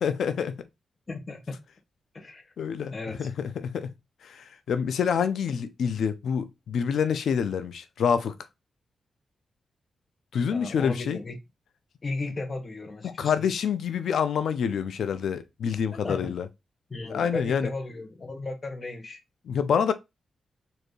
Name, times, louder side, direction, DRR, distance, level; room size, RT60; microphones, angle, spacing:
voice 1, 0.0-0.6 2.6-3.9 4.2-8.3 10.3-11.2 13.0-16.5 17.1-17.7 19.5-19.9, left 7 dB, 80° left, 0.5 m, -27 dB
voice 2, 1.1-1.6 2.1-2.5 2.9-3.3 10.5-11.4 12.0-13.3 15.9-16.3 16.9-19.2, left 3 dB, 40° left, 1.0 m, -35 dB
4.4 x 2.8 x 3.1 m
cardioid pair, 85°, 0 cm